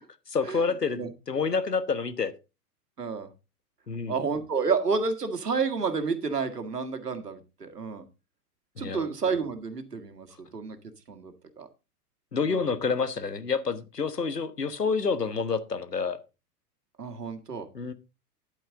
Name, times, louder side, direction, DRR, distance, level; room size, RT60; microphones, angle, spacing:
voice 1, 0.3-1.0 1.3-2.3 3.9-4.2 8.8-9.1 12.3-16.2 17.7-17.9, left 5 dB, 85° left, 1.3 m, -28 dB
voice 2, 3.0-3.3 4.1-8.0 8.8-10.8 11.1-11.7 12.5-12.7 17.0-17.7, right 5 dB, 80° right, 1.9 m, -30 dB
10.0 x 9.0 x 3.8 m
figure-of-eight pair, 105°, 47 cm